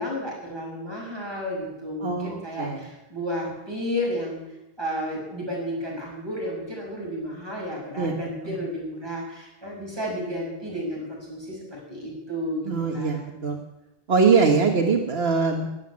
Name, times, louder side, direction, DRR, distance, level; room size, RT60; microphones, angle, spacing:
voice 1, 0.0-4.4 4.8-13.2, equal, 25° right, -4 dB, 6.4 m, -32 dB
voice 2, 2.0-2.8 8.0-8.2 8.4-8.5 12.7-13.6 14.1-15.7, right 5 dB, 75° right, 3 dB, 1.5 m, -22 dB
12.5 x 9.4 x 9.6 m, 0.95 s
omnidirectional pair, 1.0 m